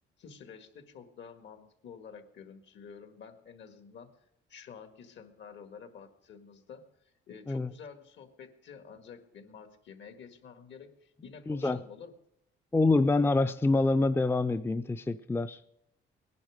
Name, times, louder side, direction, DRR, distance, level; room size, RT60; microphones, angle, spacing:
voice 1, 0.2-4.1 4.5-12.1, left 6 dB, 65° left, 7 dB, 1.9 m, -50 dB
voice 2, 11.5-11.8 12.7-15.6, left 3 dB, 10° left, 11 dB, 0.5 m, -26 dB
18.0 x 10.5 x 5.1 m, 0.78 s
cardioid pair, 90°, 20 cm